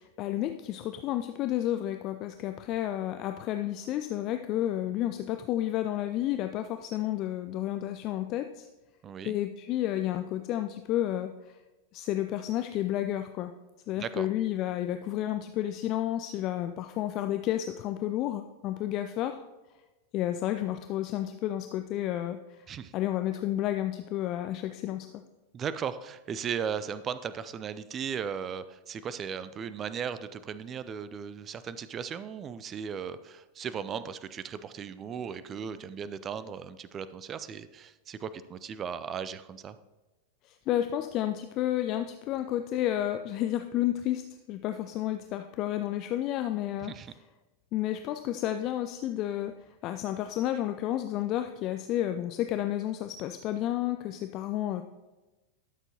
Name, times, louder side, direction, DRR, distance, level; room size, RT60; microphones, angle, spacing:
voice 1, 0.0-8.7 9.2-11.6 11.9-13.5 13.9-19.4 20.1-22.7 22.9-25.2 40.4-46.9 47.7-49.5 49.8-54.8, left 12 dB, 40° left, 8 dB, 0.4 m, -31 dB
voice 2, 9.0-9.3 14.0-14.3 22.7-22.9 25.5-39.8 46.8-47.1, right 7 dB, 25° right, 14 dB, 0.4 m, -37 dB
12.5 x 6.8 x 2.9 m, 1.1 s
figure-of-eight pair, 90°, 0 cm